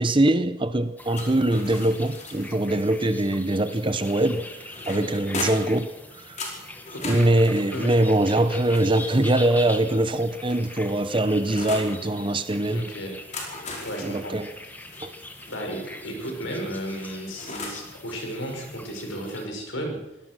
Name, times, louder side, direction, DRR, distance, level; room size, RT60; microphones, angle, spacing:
voice 1, 0.0-4.5 4.9-5.9 6.1-6.4 7.0-12.9 14.0-14.5 15.0-15.1, right 1 dB, 25° right, 0.8 m, -22 dB
sound 1, 1.0-19.5, left 2 dB, 10° left, 1.6 m, -42 dB
sound 2, 1.1-2.7 4.0-5.8 6.4-9.3 10.1-11.9 13.1-15.6 16.7-17.9, left 3 dB, 35° left, 4.9 m, -38 dB
voice 2, 6.9-7.3 7.7-8.0 12.7-13.2 13.8-14.4 15.4-20.0, equal, 65° left, 5.8 m, -34 dB
23.5 x 17.5 x 6.2 m
head